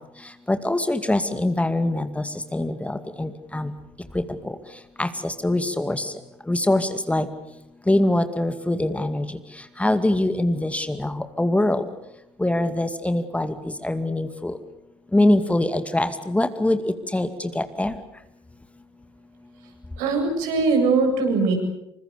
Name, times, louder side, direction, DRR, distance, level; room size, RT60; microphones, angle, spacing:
voice 1, 0.5-2.2 2.5-3.7 5.0-6.1 6.5-7.3 7.9-9.2 9.8-11.8 12.4-13.5 13.8-14.5 15.1-16.8 17.1-17.3 17.6-17.9, left 1 dB, 10° left, 9 dB, 2.3 m, -23 dB
voice 2, 20.0-21.5, right 4 dB, 65° right, 4 dB, 7.8 m, -21 dB
27.5 x 25.5 x 6.9 m, 0.85 s
figure-of-eight pair, 55°, 14 cm